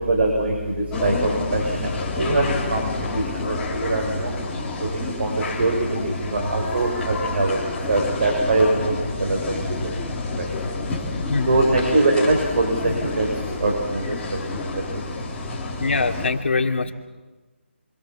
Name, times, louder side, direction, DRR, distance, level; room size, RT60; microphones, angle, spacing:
voice 1, 0.1-1.9 2.2-4.3 4.9-7.6 7.9-8.9 9.2-9.6 11.5-12.7 13.0-13.3 13.6-13.7 14.1-14.2, right 2 dB, 55° right, 1 dB, 6.6 m, -22 dB
sound 1, 0.9-16.3, left 3 dB, 10° left, 3.9 m, -30 dB
voice 2, 11.3-11.6 15.8-16.9, left 3 dB, 65° left, 5 dB, 2.7 m, -23 dB
26.5 x 26.5 x 7.6 m, 1.2 s
figure-of-eight pair, 160°, 7 cm